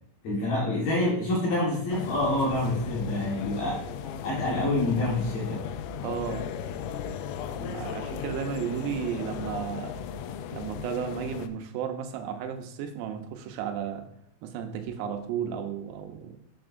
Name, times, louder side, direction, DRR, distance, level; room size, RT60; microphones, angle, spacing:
voice 1, 0.2-3.8 4.2-5.6, left 1 dB, 60° left, -4 dB, 2.7 m, -27 dB
sound 1, 1.9-11.5, left 7 dB, 85° left, 3.2 m, -36 dB
voice 2, 6.0-6.4 7.5-9.9 10.5-14.0 14.4-16.3, right 8 dB, 90° right, 5 dB, 3.7 m, -33 dB
12.0 x 6.8 x 2.6 m, 0.72 s
omnidirectional pair, 5.9 m